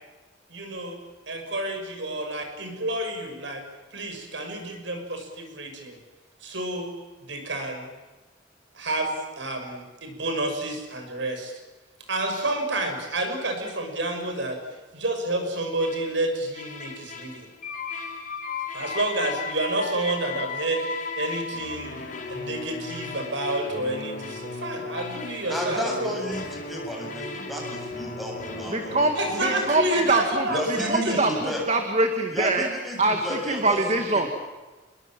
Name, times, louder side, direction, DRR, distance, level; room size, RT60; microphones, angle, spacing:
voice 1, 0.5-1.0 1.3-3.6 3.9-6.0 6.4-6.9 7.3-7.9 8.7-11.5 12.1-14.6 14.9-17.5 18.7-20.9 21.2-21.9 22.3-26.2 29.2-31.3, right 2 dB, 75° right, 5 dB, 6.3 m, -29 dB
sound 1, 15.8-16.2 16.5-29.9, left 4 dB, 45° left, 5.6 m, -35 dB
voice 2, 25.5-29.6 29.9-30.0 30.5-31.7 32.3-33.8 34.1-34.3, equal, ahead, -1 dB, 7.9 m, -32 dB
voice 3, 28.7-30.5 30.9-32.7 33.0-34.3, right 2 dB, 35° right, 5 dB, 2.1 m, -24 dB
29.0 x 22.0 x 7.6 m, 1.2 s
head